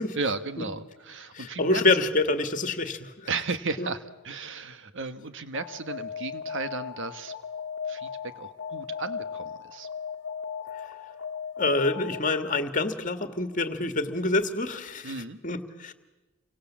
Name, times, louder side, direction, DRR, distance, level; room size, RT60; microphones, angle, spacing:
voice 1, 0.1-1.8 3.3-7.3 7.9-8.1 8.3-9.9 15.0-15.4, right 4 dB, 55° right, 11 dB, 1.5 m, -34 dB
voice 2, 1.3-3.3 3.8-3.9 11.6-15.1 15.4-15.9, left 2 dB, 35° left, 9 dB, 1.9 m, -26 dB
Alarm, 5.5-12.6, left 7 dB, 55° left, 1.4 m, -37 dB
29.5 x 25.0 x 7.5 m, 1.1 s
head